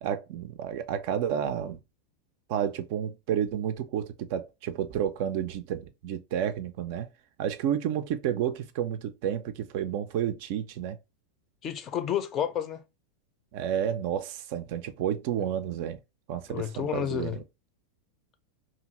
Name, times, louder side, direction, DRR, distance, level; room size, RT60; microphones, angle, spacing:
voice 1, 0.0-1.8 2.5-7.1 7.4-11.0 13.5-16.0 16.3-17.4, right 9 dB, 45° right, 0.4 m, -31 dB
voice 2, 11.6-12.8 15.4-15.5 16.5-17.4, left 10 dB, 30° left, 0.5 m, -30 dB
2.7 x 2.5 x 2.9 m
figure-of-eight pair, 90°, 0 cm